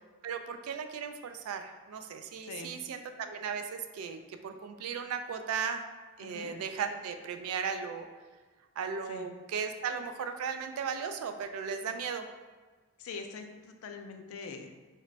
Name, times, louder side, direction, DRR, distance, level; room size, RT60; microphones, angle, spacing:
voice 1, 0.2-5.8 6.2-8.1 8.8-12.2, right 6 dB, 80° right, 8 dB, 0.3 m, -36 dB
voice 2, 2.4-2.8 6.2-6.6 9.1-9.3 13.0-14.7, left 4 dB, 75° left, 5 dB, 0.4 m, -43 dB
3.1 x 2.1 x 3.8 m, 1.3 s
head